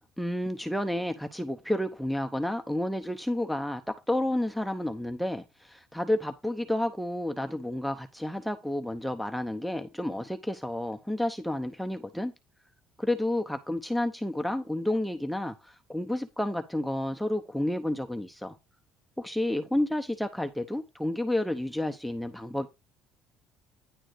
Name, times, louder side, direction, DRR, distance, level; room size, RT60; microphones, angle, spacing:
voice 1, 0.2-12.3 13.0-18.6 19.2-22.7, left 1 dB, ahead, 0.8 m, -30 dB
10.5 x 3.8 x 6.6 m
cardioid pair, 130°, 0 cm